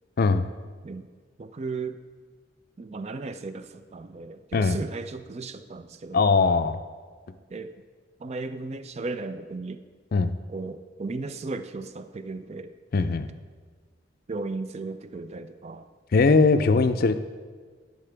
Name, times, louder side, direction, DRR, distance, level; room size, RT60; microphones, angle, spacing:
voice 1, 1.4-2.0 2.8-6.3 7.5-7.7 8.2-9.8 10.5-12.7 14.3-15.9 16.6-16.9, right 3 dB, 35° right, 10 dB, 0.4 m, -35 dB
voice 2, 6.1-6.8 10.1-10.3 12.9-13.3 16.1-17.2, left 4 dB, 50° left, 10 dB, 0.4 m, -20 dB
12.0 x 5.4 x 3.4 m, 1.5 s
head